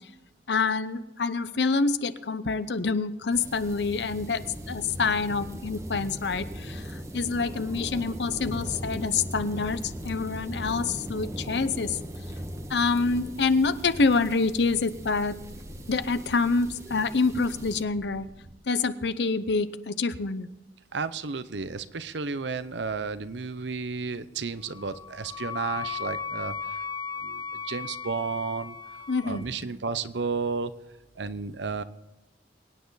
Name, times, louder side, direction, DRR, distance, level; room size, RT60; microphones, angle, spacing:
voice 1, 0.5-12.0 12.7-15.4 15.9-18.3 18.7-20.5 29.1-29.5, left 4 dB, 70° left, 13 dB, 0.8 m, -27 dB
sound 1, 3.3-17.8, equal, 20° right, 1.4 m, -39 dB
sound 2, 13.0-18.5, right 1 dB, 45° right, 1.1 m, -50 dB
voice 2, 20.9-26.8 27.2-28.7 29.2-30.7 31.2-31.8, right 4 dB, 85° right, 13 dB, 0.8 m, -32 dB
Wind instrument woodwind instrument, 24.7-29.5, left 6 dB, 25° left, 0.7 m, -36 dB
23.5 x 9.6 x 4.0 m, 1.1 s
head